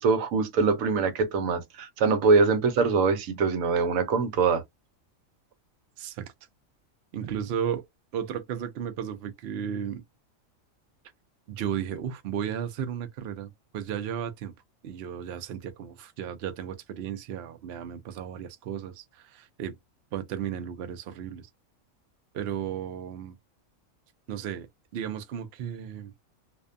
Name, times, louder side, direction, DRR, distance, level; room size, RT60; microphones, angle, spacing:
voice 1, 0.0-4.6, right 4 dB, 80° right, 1.1 m, -23 dB
voice 2, 6.0-6.3 7.1-7.9 8.1-10.0 11.5-14.5 14.8-19.8 20.1-21.5 22.3-23.4 24.3-26.1, right 9 dB, 65° right, 0.7 m, -34 dB
2.5 x 2.1 x 2.4 m
omnidirectional pair, 1.4 m